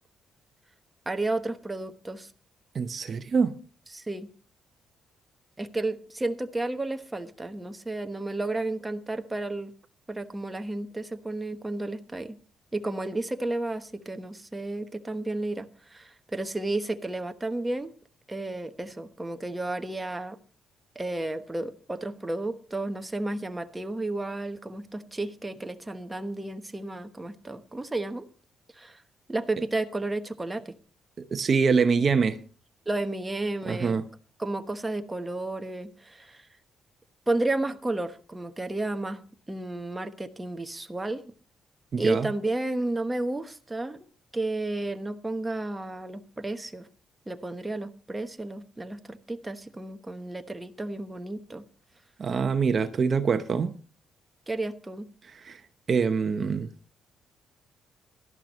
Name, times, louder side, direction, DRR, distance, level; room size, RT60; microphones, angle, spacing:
voice 1, 1.1-2.3 3.9-4.3 5.6-9.7 10.1-12.4 12.7-17.9 18.3-20.4 20.9-28.2 28.8-29.0 29.3-30.7 32.9-34.0 34.4-36.5 37.3-39.2 39.5-41.2 42.0-44.0 44.3-46.9 47.3-51.6 54.5-55.1, right 2 dB, 15° right, 1.1 m, -32 dB
voice 2, 2.7-3.5 31.2-32.4 33.6-34.0 41.9-42.3 52.2-53.7 55.3-55.6 55.9-56.7, right 5 dB, 45° right, 0.8 m, -25 dB
17.0 x 12.0 x 3.1 m
cardioid pair, 90°, 0 cm